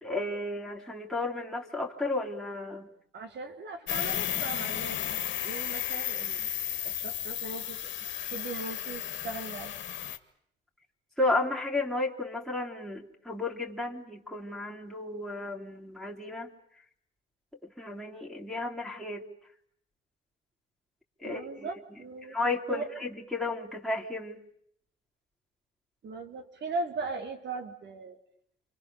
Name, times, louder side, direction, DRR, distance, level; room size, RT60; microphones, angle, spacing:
voice 1, 0.0-2.9 11.2-16.5 17.6-19.2 21.2-21.7 22.3-24.4, left 2 dB, ahead, -3 dB, 3.5 m, -33 dB
voice 2, 3.1-6.5 6.8-7.9 8.2-9.7 21.2-22.4 22.7-22.9 26.0-28.2, right 3 dB, 60° right, 5 dB, 3.9 m, -38 dB
sound 1, 3.9-10.2, left 10 dB, 70° left, 2.0 m, -33 dB
29.5 x 25.0 x 7.1 m, 0.69 s
cardioid pair, 90°, 20 cm